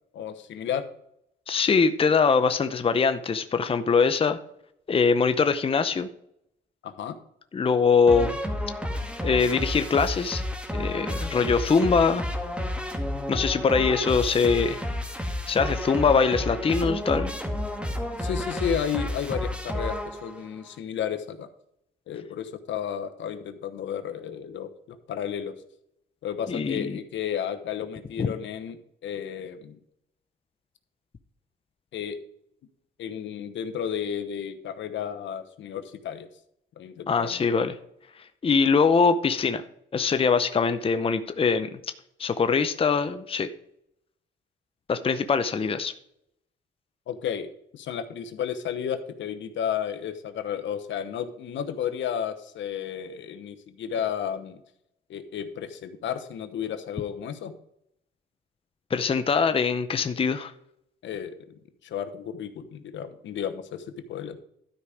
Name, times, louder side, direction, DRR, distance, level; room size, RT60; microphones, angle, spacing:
voice 1, 0.1-0.9 6.8-7.1 18.2-21.5 22.1-25.6 26.2-29.8 31.9-32.2 33.0-36.3 36.8-37.5 47.1-54.6 55.1-57.5 61.0-64.4, left 8 dB, 70° left, 9 dB, 1.0 m, -33 dB
voice 2, 1.5-4.4 4.9-6.1 7.5-8.4 9.2-10.4 10.7-12.2 13.3-14.8 15.5-17.3 26.5-27.0 28.2-28.3 37.1-37.7 38.4-39.6 39.9-41.8 42.2-43.5 44.9-45.9 58.9-60.5, left 5 dB, 30° left, 9 dB, 0.6 m, -23 dB
sound 1, 8.1-20.5, left 1 dB, 5° right, 1.8 m, -31 dB
12.5 x 5.0 x 4.9 m, 0.74 s
cardioid pair, 90°, 20 cm